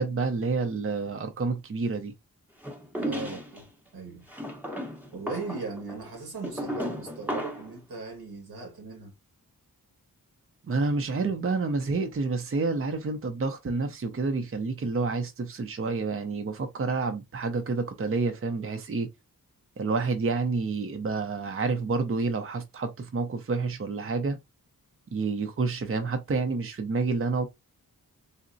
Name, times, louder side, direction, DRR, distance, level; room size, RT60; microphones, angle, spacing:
voice 1, 0.0-2.1 10.7-19.1 19.8-24.4 25.1-27.4, right 4 dB, 40° right, 0.5 m, -29 dB
sound 1, 2.6-3.6 4.3-7.7, equal, 5° right, 0.7 m, -34 dB
voice 2, 3.0-4.3 5.1-9.1, right 4 dB, 90° right, 1.4 m, -38 dB
3.8 x 2.1 x 2.5 m
wide cardioid pair, 85°, 36 cm